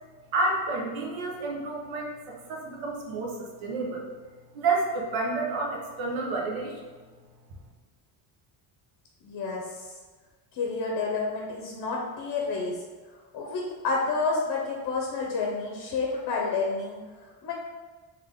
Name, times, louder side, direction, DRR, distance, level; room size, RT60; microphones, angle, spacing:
voice 1, 0.3-4.1 4.5-6.8, right 3 dB, 80° right, -1 dB, 1.1 m, -30 dB
voice 2, 9.2-9.9 10.5-12.8 13.3-17.5, left 4 dB, 45° left, -2 dB, 0.7 m, -30 dB
3.8 x 3.0 x 3.5 m, 1.4 s
cardioid pair, 140°, 47 cm